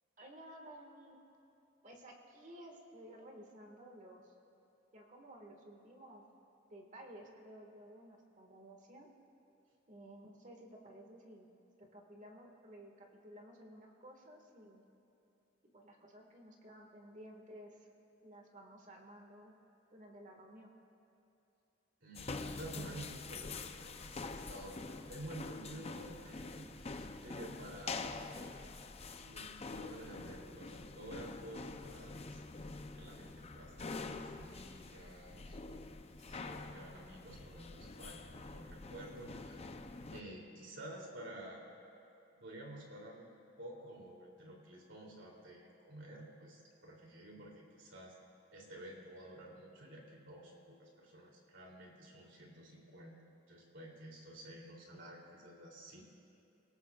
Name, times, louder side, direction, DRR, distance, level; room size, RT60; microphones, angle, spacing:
voice 1, 0.2-1.2 1.8-4.3 4.9-6.2 6.7-9.1 9.9-11.5 11.8-14.8 15.7-17.9 18.2-19.5 19.9-20.7, right 1 dB, 40° right, 1 dB, 1.8 m, -54 dB
voice 2, 22.0-28.3 29.2-32.4 32.9-39.7 40.1-41.7 42.3-43.2 43.6-48.1 48.5-53.2 53.5-56.0, right 1 dB, 65° right, -2 dB, 3.1 m, -51 dB
sound 1, 22.2-40.2, left 3 dB, 30° left, 0.6 m, -46 dB
29.0 x 18.0 x 2.4 m, 2.7 s
head